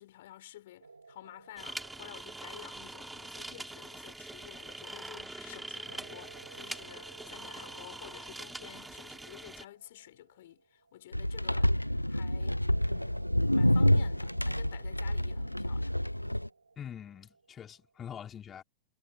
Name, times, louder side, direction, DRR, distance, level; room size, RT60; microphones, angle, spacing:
voice 1, 0.0-16.0, left 14 dB, 55° left, 4.6 m, -51 dB
sound 1, 0.8-5.0 5.9-11.9 12.7-18.1, right 4 dB, 80° right, 4.1 m, -57 dB
sound 2, 1.6-9.6, right 2 dB, 5° right, 4.6 m, -44 dB
sound 3, 11.1-16.5, left 1 dB, 90° left, 0.5 m, -28 dB
voice 2, 16.8-18.6, left 9 dB, 25° left, 3.8 m, -44 dB
figure-of-eight pair, 90°, 0 cm